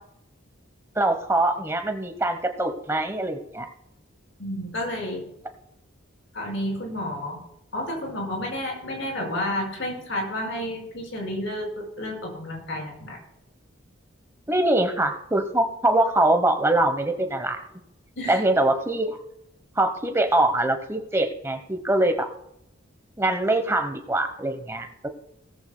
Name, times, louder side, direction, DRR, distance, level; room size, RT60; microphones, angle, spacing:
voice 1, 1.0-3.7 14.5-17.6 18.3-19.2 19.7-22.3 23.2-25.1, right 1 dB, 10° right, 7 dB, 1.0 m, -23 dB
voice 2, 4.4-5.3 6.3-7.4 7.7-13.2 18.2-18.4, left 1 dB, 65° left, 0 dB, 5.0 m, -31 dB
17.5 x 14.0 x 2.2 m, 0.77 s
head